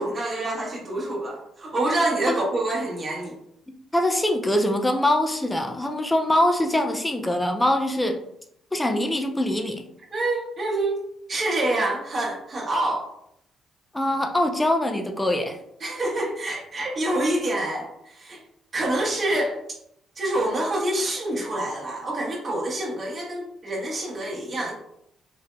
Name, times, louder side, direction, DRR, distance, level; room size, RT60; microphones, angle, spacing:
voice 1, 0.0-3.4 10.1-11.0 11.3-13.1 15.8-18.4 18.7-19.6 20.2-24.7, right 1 dB, 45° right, -4 dB, 1.0 m, -26 dB
voice 2, 3.9-8.2 8.7-9.8 13.9-15.6, left 1 dB, 15° left, 4 dB, 0.5 m, -23 dB
4.0 x 2.6 x 2.2 m, 0.76 s
supercardioid pair, 65°, 0 cm